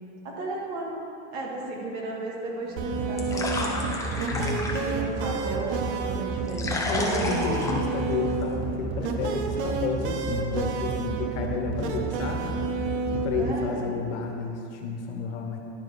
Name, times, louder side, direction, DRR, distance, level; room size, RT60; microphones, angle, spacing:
voice 1, 0.2-1.0 1.3-3.8 4.8-7.8 13.4-14.0, right 2 dB, 55° right, -3 dB, 2.0 m, -34 dB
sound 1, 2.6-8.6, left 2 dB, 10° left, 0.7 m, -34 dB
sound 2, 2.8-13.5, right 4 dB, 70° right, 0.8 m, -29 dB
voice 2, 4.3-4.8 6.8-12.8 13.1-15.6, left 5 dB, 80° left, 2 dB, 1.3 m, -31 dB
10.5 x 6.4 x 3.5 m, 2.6 s
supercardioid pair, 145°, 35 cm